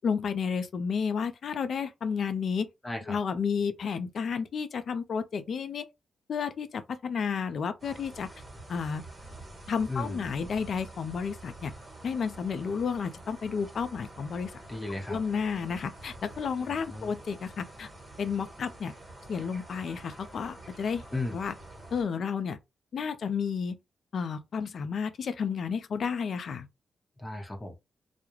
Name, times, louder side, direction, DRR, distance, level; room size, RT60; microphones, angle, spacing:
voice 1, 0.0-2.7 3.1-5.8 6.3-8.3 8.7-9.0 9.7-11.7 12.0-14.5 15.1-17.9 18.2-18.9 19.3-21.0 21.3-21.5 21.9-22.6 22.9-23.8 24.1-26.7, left 6 dB, 65° left, 0.4 m, -31 dB
voice 2, 2.8-3.2 9.9-10.3 14.7-15.2 16.9-17.1 21.1-21.4 27.2-27.8, left 2 dB, 25° left, 0.8 m, -35 dB
sound 1, 7.8-22.0, right 1 dB, 40° right, 1.2 m, -47 dB
2.3 x 2.0 x 3.0 m
supercardioid pair, 50°, 0 cm